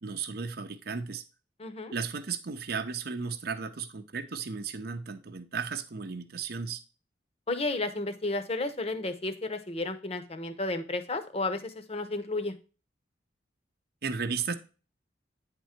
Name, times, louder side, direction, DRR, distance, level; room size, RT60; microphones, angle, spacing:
voice 1, 0.0-1.2 1.9-6.8 14.0-14.5, right 5 dB, 60° right, 8 dB, 0.6 m, -35 dB
voice 2, 1.6-1.9 7.5-12.5, left 2 dB, 35° left, 9 dB, 0.8 m, -32 dB
9.3 x 3.7 x 4.3 m, 0.34 s
head